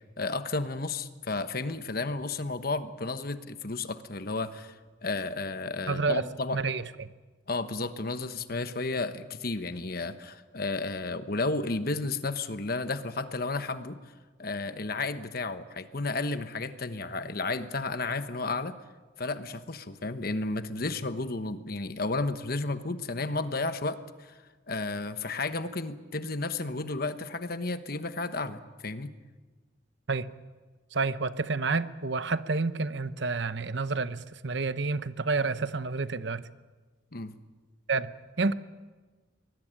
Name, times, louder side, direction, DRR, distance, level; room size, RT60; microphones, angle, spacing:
voice 1, 0.2-6.6 7.5-14.1 14.4-18.8 19.2-24.4 24.7-29.1 37.1-37.3, left 3 dB, 50° left, 11 dB, 1.2 m, -32 dB
voice 2, 5.9-6.2 6.5-7.1 30.1-30.3 30.9-36.5 37.9-38.5, right 4 dB, 60° right, 13 dB, 0.9 m, -29 dB
23.5 x 20.0 x 9.0 m, 1.3 s
head